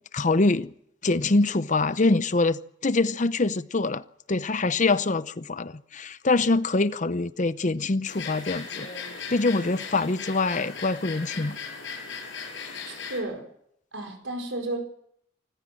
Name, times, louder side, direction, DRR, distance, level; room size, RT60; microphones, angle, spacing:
voice 1, 0.1-0.7 1.0-4.0 4.3-8.9 9.3-11.6, left 3 dB, 40° left, 0.7 m, -24 dB
sound 1, 8.0-13.2, left 5 dB, 70° left, 8.0 m, -38 dB
voice 2, 12.9-13.4 13.9-14.8, right 2 dB, 75° right, 5.1 m, -32 dB
25.0 x 15.0 x 7.6 m
head